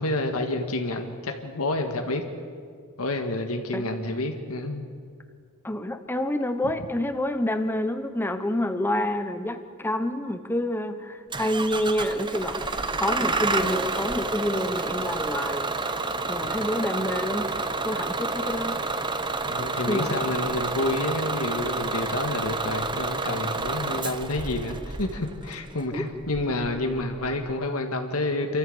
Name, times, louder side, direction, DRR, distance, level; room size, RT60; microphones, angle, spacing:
voice 1, 0.0-2.2 3.0-4.8 19.5-28.6, left 2 dB, 75° left, 5 dB, 1.8 m, -29 dB
voice 2, 5.6-15.7 16.3-17.6 17.8-18.7 19.9-20.2 25.9-26.0, left 1 dB, 10° left, 9 dB, 0.9 m, -28 dB
Bus / Engine starting, 11.3-27.5, right 3 dB, 20° right, 0.9 m, -29 dB
27.0 x 14.0 x 7.9 m, 2.1 s
head